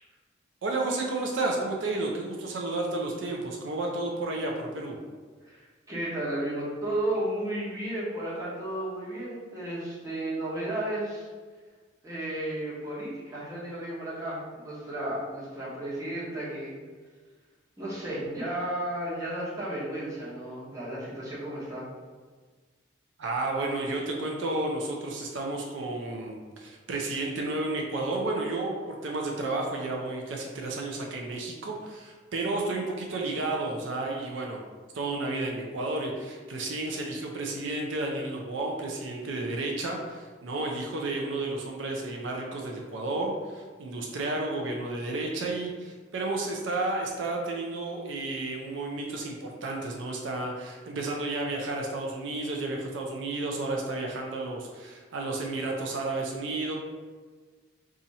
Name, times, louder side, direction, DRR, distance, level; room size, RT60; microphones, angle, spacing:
voice 1, 0.6-5.0 23.2-34.6 34.9-56.8, right 2 dB, 80° right, 0 dB, 0.5 m, -32 dB
voice 2, 5.4-11.3 12.0-16.8 17.8-21.9, right 1 dB, 15° right, -8 dB, 1.0 m, -33 dB
2.8 x 2.4 x 4.0 m, 1.5 s
head